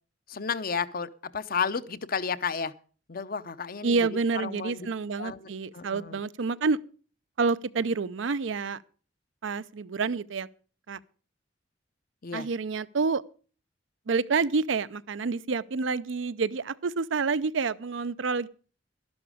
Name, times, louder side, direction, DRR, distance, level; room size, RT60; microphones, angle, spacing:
voice 1, 0.3-2.7 3.1-4.0 4.4-4.9 5.2-5.5 5.7-6.2 12.2-12.5, left 5 dB, 50° left, 0.7 m, -32 dB
voice 2, 3.8-6.8 7.4-8.8 9.4-10.5 10.9-11.0 12.3-13.2 14.1-18.5, right 4 dB, 80° right, 0.6 m, -28 dB
12.0 x 11.5 x 4.9 m
head